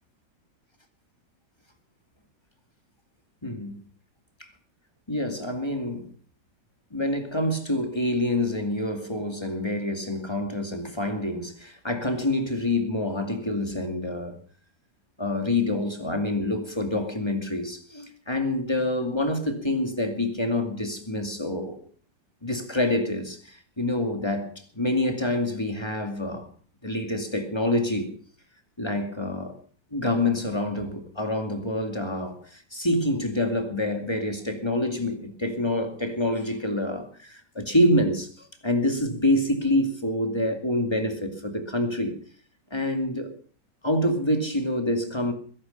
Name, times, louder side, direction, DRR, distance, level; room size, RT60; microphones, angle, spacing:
voice 1, 3.4-3.8 4.4-4.5 5.1-6.1 6.9-14.4 15.2-21.8 22.4-26.5 26.8-28.1 28.8-29.6 29.9-42.2 42.7-43.3 43.8-45.3, left 1 dB, 15° left, 2.4 m, -27 dB
21.0 x 11.5 x 5.4 m
omnidirectional pair, 2.0 m